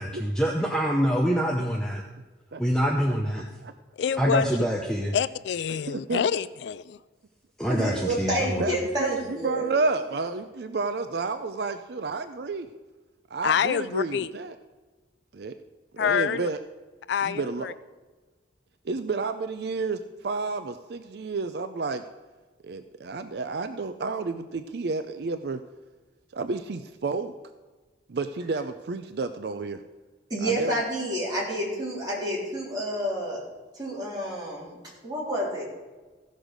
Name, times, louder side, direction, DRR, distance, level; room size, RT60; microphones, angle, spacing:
voice 1, 0.0-2.0 2.6-3.5 4.2-5.1 7.6-8.7, equal, 5° left, 0 dB, 0.7 m, -25 dB
voice 2, 4.0-4.5 5.1-7.0 13.4-14.3 16.0-16.5 17.1-17.7, left 7 dB, 65° left, 16 dB, 0.3 m, -26 dB
voice 3, 5.9-6.2 7.8-8.0 8.6-12.7 13.3-14.5 15.3-15.5 15.9-16.6 17.2-17.7 18.8-22.0 22.6-25.6 26.3-27.3 28.1-29.8 30.4-30.7, right 3 dB, 55° right, 9 dB, 0.4 m, -30 dB
voice 4, 7.7-9.7 30.3-33.4 33.7-34.8 35.0-35.6, right 1 dB, 20° right, -6 dB, 3.5 m, -29 dB
15.5 x 6.4 x 5.1 m, 1.3 s
head